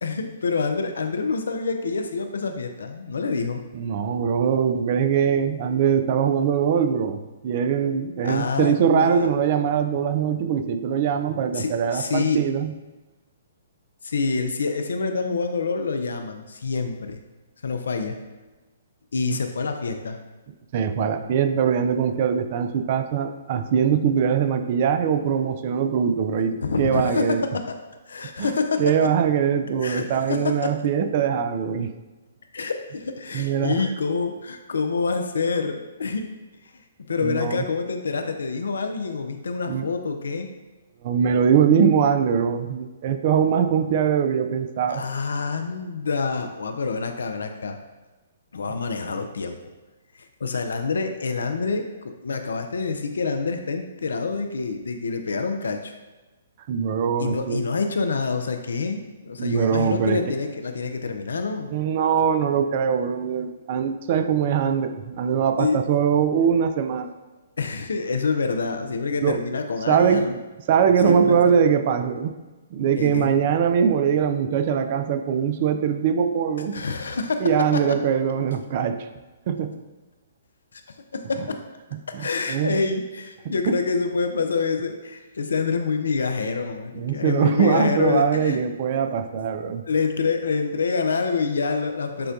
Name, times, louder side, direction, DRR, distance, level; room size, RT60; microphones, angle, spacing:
voice 1, 0.0-3.6 8.2-9.3 11.5-12.4 14.0-17.2 17.6-18.2 19.1-20.2 26.6-27.6 28.1-29.1 29.8-30.7 32.5-36.3 37.1-40.5 44.9-47.8 48.5-49.6 50.1-51.8 52.2-55.9 57.2-61.7 65.6-65.8 67.6-70.4 71.0-71.6 73.0-73.3 76.7-77.4 77.7-78.0 80.7-80.8 81.1-81.6 82.1-88.6 89.1-89.2 89.9-92.3, left 4 dB, 75° left, 6 dB, 0.4 m, -27 dB
voice 2, 3.7-12.7 19.3-19.4 20.7-27.4 28.4-28.5 28.8-31.9 33.3-33.9 37.2-37.6 39.7-39.9 41.0-45.0 56.7-57.6 59.4-60.2 61.7-67.1 69.2-69.4 69.9-70.3 70.7-72.4 72.7-76.8 77.4-79.1 79.5-79.7 81.9-82.8 83.5-83.8 86.9-89.8, right 7 dB, 45° right, 9 dB, 0.3 m, -22 dB
6.6 x 2.2 x 2.5 m, 1.2 s
hypercardioid pair, 130°, 0 cm